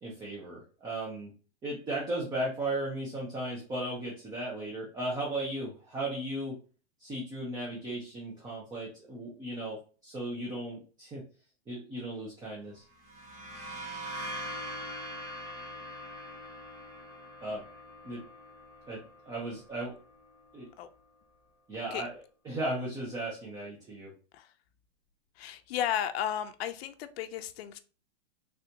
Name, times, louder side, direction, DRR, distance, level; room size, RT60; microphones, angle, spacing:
voice 1, 0.0-1.3 1.6-6.6 7.0-11.2 11.7-12.8 17.4-17.6 18.0-18.2 18.9-20.0 20.5-20.7 21.7-22.1 22.4-24.1, right 1 dB, 10° right, 0.5 m, -36 dB
sound 1, 12.9-20.5, equal, 30° right, 0.9 m, -43 dB
voice 2, 25.4-27.8, left 10 dB, 65° left, 0.5 m, -34 dB
3.4 x 2.5 x 2.7 m
supercardioid pair, 145°, 33 cm